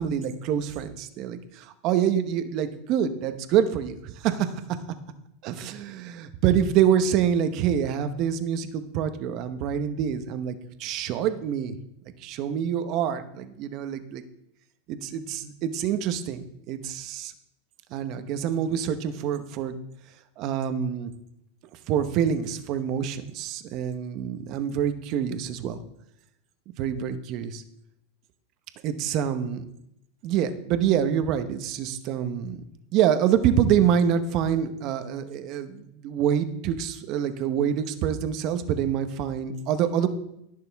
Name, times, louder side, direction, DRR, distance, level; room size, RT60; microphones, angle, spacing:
voice 1, 0.0-4.5 5.4-11.8 12.2-14.2 14.9-17.3 17.9-19.7 20.4-21.1 21.9-25.8 26.8-27.6 28.8-29.6 30.2-32.6 32.9-40.1, right 9 dB, 45° right, 9 dB, 1.0 m, -26 dB
18.0 x 6.7 x 3.5 m, 0.80 s
supercardioid pair, 140°, 0 cm